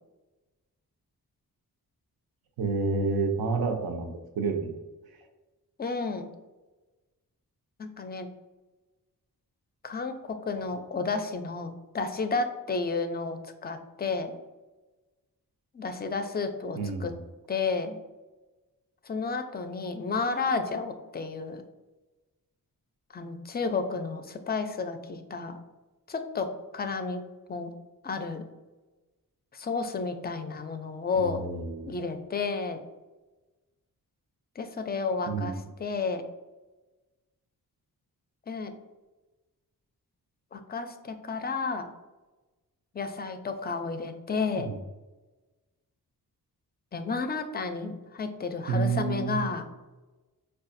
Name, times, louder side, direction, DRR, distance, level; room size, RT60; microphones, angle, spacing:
voice 1, 2.6-4.1 4.4-4.8 16.8-17.2 31.1-31.9 35.2-35.6 44.5-44.8 48.7-49.5, right 4 dB, 85° right, 5 dB, 0.6 m, -29 dB
voice 2, 5.8-6.3 7.8-8.3 9.8-14.4 15.7-17.1 17.5-18.0 19.0-21.6 23.1-25.6 26.1-26.5 26.7-27.2 27.5-27.7 28.0-28.4 29.5-31.4 31.9-32.8 34.6-36.2 38.5-38.7 40.5-41.9 42.9-44.7 46.9-49.6, left 4 dB, 30° left, 8 dB, 0.4 m, -31 dB
4.8 x 2.3 x 2.5 m, 1.2 s
cardioid pair, 80°, 36 cm